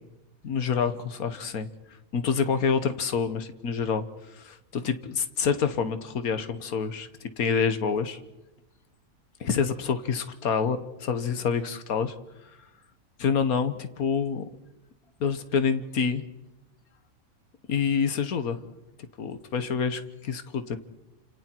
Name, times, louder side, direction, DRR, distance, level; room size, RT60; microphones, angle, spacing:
voice 1, 0.4-1.7 2.1-4.0 4.3-8.2 9.4-12.1 13.2-14.4 15.2-16.2 17.7-18.6 19.2-20.8, left 6 dB, 90° left, 10 dB, 1.8 m, -27 dB
29.5 x 27.0 x 4.6 m, 0.98 s
omnidirectional pair, 1.5 m